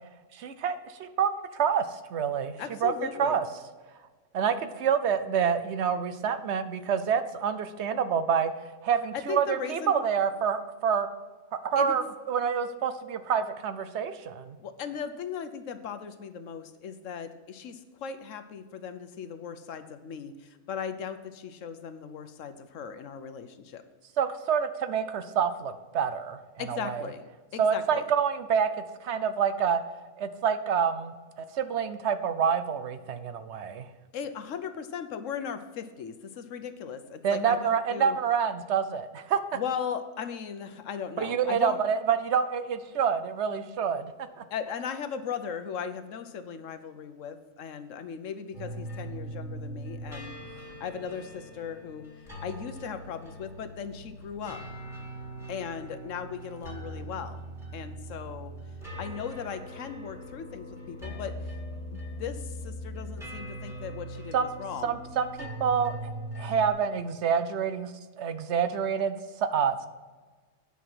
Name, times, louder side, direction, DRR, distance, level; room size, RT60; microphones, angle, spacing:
voice 1, 0.3-2.5 2.8-2.9 3.2-3.4 4.3-8.5 8.8-11.1 11.5-14.6 24.2-27.1 27.6-28.7 29.0-29.8 30.2-31.1 31.5-33.9 37.2-39.4 41.2-44.1 44.4-44.5 64.3-64.5 64.8-65.9 66.4-67.9 68.2-69.2 69.5-69.9, right 7 dB, 65° right, 11 dB, 0.9 m, -27 dB
voice 2, 2.6-3.4 9.1-10.0 11.8-12.0 14.6-23.8 26.6-27.2 27.5-28.0 34.1-38.2 39.5-41.8 44.5-50.3 50.8-52.0 52.4-54.6 55.5-57.4 57.7-58.5 59.0-61.5 61.9-65.0, left 7 dB, 80° left, 10 dB, 1.1 m, -37 dB
sound 1, 48.5-66.7, right 1 dB, ahead, 2.2 m, -41 dB
9.5 x 5.7 x 6.0 m, 1.4 s
omnidirectional pair, 1.3 m